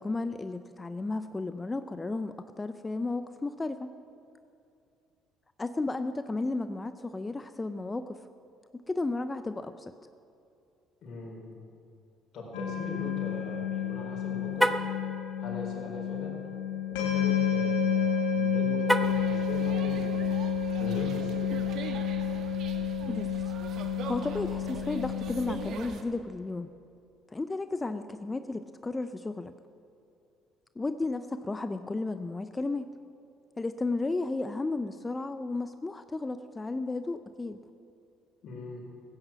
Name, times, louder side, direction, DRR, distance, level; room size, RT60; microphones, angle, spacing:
voice 1, 0.0-3.9 5.6-8.2 8.7-9.9 23.1-23.3 23.8-26.7 27.3-29.5 30.8-32.9 33.6-37.6, left 3 dB, 20° left, 11 dB, 0.6 m, -33 dB
voice 2, 11.0-11.5 12.3-14.8 15.4-16.4 16.9-20.4 20.8-21.7 38.4-38.8, left 2 dB, 60° left, -1 dB, 4.7 m, -40 dB
sound 1, 12.5-25.6, left 7 dB, 85° left, 3.1 m, -30 dB
Car, 14.5-15.0 18.8-19.3, equal, 5° right, 1.0 m, -26 dB
sound 2, 19.0-26.0, right 6 dB, 65° right, 1.3 m, -43 dB
16.0 x 9.5 x 7.5 m, 2.5 s
supercardioid pair, 65°, 0 cm